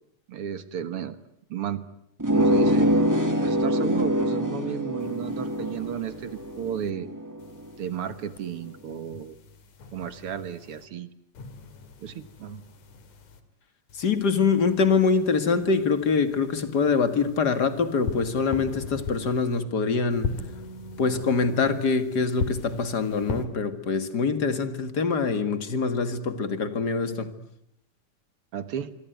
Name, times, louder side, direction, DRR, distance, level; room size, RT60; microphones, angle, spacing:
voice 1, 0.3-1.2 1.5-1.8 2.3-2.9 3.4-7.1 7.8-9.3 9.9-11.1 12.0-12.6 28.5-28.9, right 8 dB, 55° right, 1.8 m, -33 dB
sound 1, 2.2-7.5, equal, 30° right, 0.3 m, -24 dB
sound 2, 5.0-6.9 7.4-10.9 11.3-13.4 13.9-19.6 20.1-23.5, left 4 dB, 65° left, 3.8 m, -40 dB
voice 2, 13.9-20.3 21.0-27.3, left 5 dB, 35° left, 2.0 m, -24 dB
26.5 x 23.5 x 9.3 m
omnidirectional pair, 3.8 m